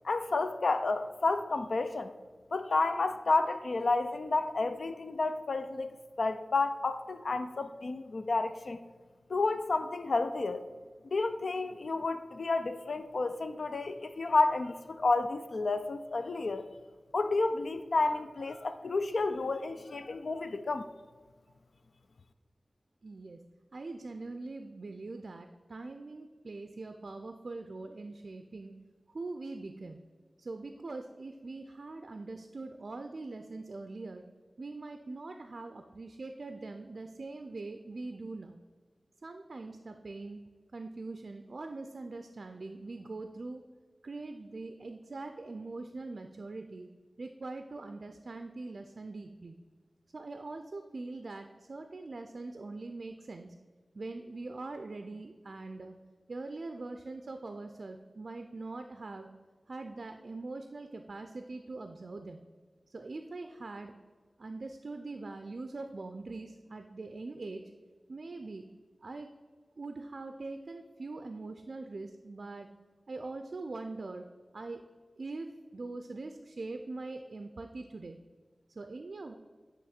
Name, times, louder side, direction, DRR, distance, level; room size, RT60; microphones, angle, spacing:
voice 1, 0.0-2.1 2.5-5.9 6.2-8.8 9.3-10.6 11.1-16.7 17.1-20.9, left 3 dB, 80° left, 10 dB, 0.4 m, -30 dB
voice 2, 23.0-23.4 23.7-28.8 29.1-30.0 30.4-34.2 34.6-38.6 39.2-40.4 40.7-43.6 44.0-46.9 47.2-49.6 50.1-53.6 53.9-56.0 56.3-59.3 59.7-62.4 62.9-63.9 64.4-67.7 68.1-68.7 69.0-69.3 69.8-72.7 73.1-74.3 74.5-74.8 75.2-78.2 78.7-79.3, right 3 dB, 70° right, 7 dB, 0.4 m, -42 dB
8.8 x 3.0 x 4.3 m, 1.5 s
cardioid pair, 45°, 0 cm